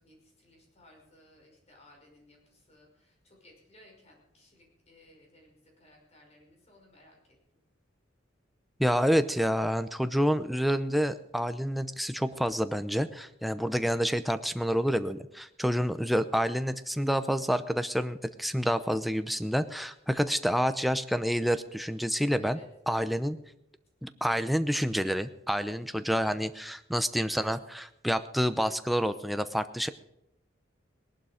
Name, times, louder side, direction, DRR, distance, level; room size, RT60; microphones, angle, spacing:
voice 1, 0.0-7.4 13.6-13.9 22.4-22.7 29.7-29.9, left 1 dB, 35° left, 0 dB, 5.5 m, -59 dB
voice 2, 8.8-22.6 22.9-23.4 24.0-29.9, equal, ahead, 10 dB, 0.7 m, -28 dB
19.0 x 11.5 x 5.0 m, 0.83 s
head